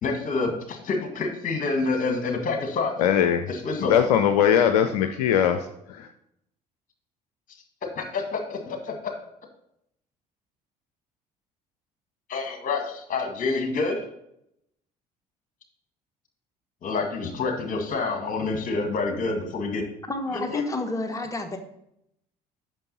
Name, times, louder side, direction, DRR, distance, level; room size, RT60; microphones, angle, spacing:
voice 1, 0.0-2.9 3.5-4.0 8.0-9.0 12.3-14.0 16.8-19.8 20.3-20.6, left 3 dB, 40° left, 5 dB, 1.8 m, -27 dB
voice 2, 3.0-3.4 3.9-6.1, left 9 dB, 70° left, 7 dB, 0.5 m, -21 dB
voice 3, 20.1-21.6, left 2 dB, 15° left, 5 dB, 1.1 m, -29 dB
8.9 x 6.1 x 4.1 m, 0.77 s
figure-of-eight pair, 55°, 21 cm